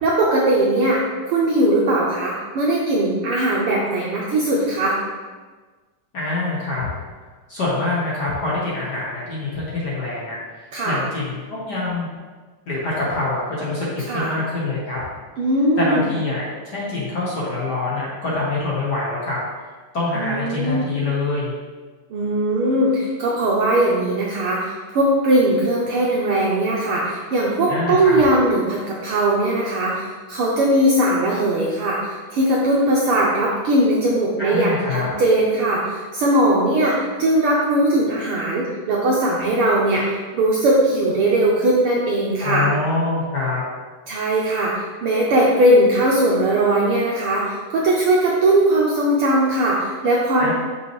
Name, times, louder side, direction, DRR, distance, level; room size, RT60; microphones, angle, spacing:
voice 1, 0.0-5.0 10.7-11.0 14.1-14.3 15.4-16.0 20.2-20.8 22.1-42.7 44.1-50.5, right 1 dB, 80° right, -4 dB, 1.2 m, -19 dB
voice 2, 6.1-6.9 7.5-12.1 12.7-15.0 15.8-21.5 27.7-28.2 34.4-35.1 42.4-43.6 50.4-50.5, left 2 dB, 55° left, -6 dB, 1.2 m, -25 dB
6.1 x 6.0 x 3.1 m, 1.4 s
omnidirectional pair, 3.4 m